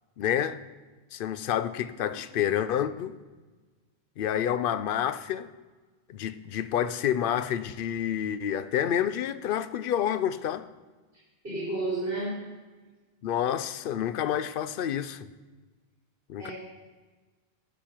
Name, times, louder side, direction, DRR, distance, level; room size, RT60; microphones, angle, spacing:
voice 1, 0.2-0.6 1.1-3.1 4.2-5.5 6.1-10.7 13.2-15.3 16.3-16.5, left 10 dB, 65° left, 0.7 m, -28 dB
voice 2, 11.4-12.4 16.4-16.5, right 2 dB, 65° right, 4.5 m, -31 dB
13.5 x 7.4 x 4.4 m
omnidirectional pair, 1.1 m